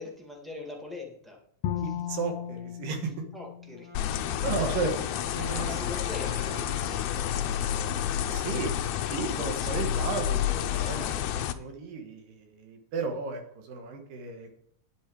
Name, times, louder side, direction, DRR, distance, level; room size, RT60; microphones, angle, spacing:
voice 1, 0.0-1.4 1.8-2.1 3.3-3.9 5.5-8.8 9.6-10.1 10.9-11.7, left 3 dB, ahead, 0 dB, 0.5 m, -43 dB
Bowed string instrument, 1.6-4.8, left 10 dB, 70° left, 1.8 m, -36 dB
voice 2, 1.7-3.1 4.1-4.2 4.4-4.9 5.2-5.7 8.3-8.7 9.1-11.0 11.4-14.5, right 4 dB, 75° right, 5 dB, 3.1 m, -34 dB
Wind instrument woodwind instrument, 3.7-8.5, right 2 dB, 45° right, 3.8 m, -46 dB
sound 1, 3.9-11.5, left 11 dB, 90° left, 1.6 m, -30 dB
10.0 x 8.8 x 4.7 m, 0.66 s
omnidirectional pair, 4.0 m